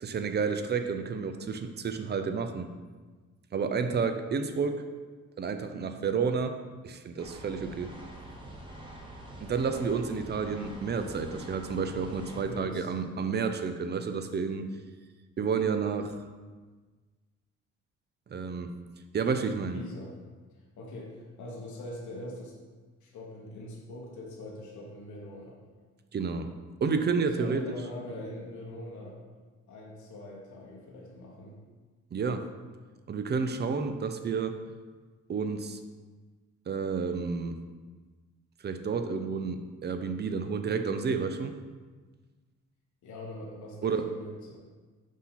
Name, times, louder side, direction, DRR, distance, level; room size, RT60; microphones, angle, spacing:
voice 1, 0.0-2.7 3.5-4.8 5.4-6.6 6.8-8.0 9.4-14.7 15.4-16.2 18.3-18.7 19.1-19.8 26.1-26.5 26.8-27.6 32.1-32.5 33.1-34.6 35.3-35.8 36.7-37.6 38.6-41.6 43.8-44.1, right 5 dB, 35° right, 8 dB, 0.5 m, -30 dB
sound 1, 7.2-12.4, right 1 dB, 15° right, 1.0 m, -45 dB
voice 2, 12.3-12.9 19.7-20.1 20.5-22.5 23.0-25.6 27.3-29.2 29.7-31.6 43.0-44.6, left 1 dB, 70° left, -3 dB, 1.2 m, -42 dB
6.1 x 2.8 x 5.6 m, 1.4 s
cardioid pair, 90°, 30 cm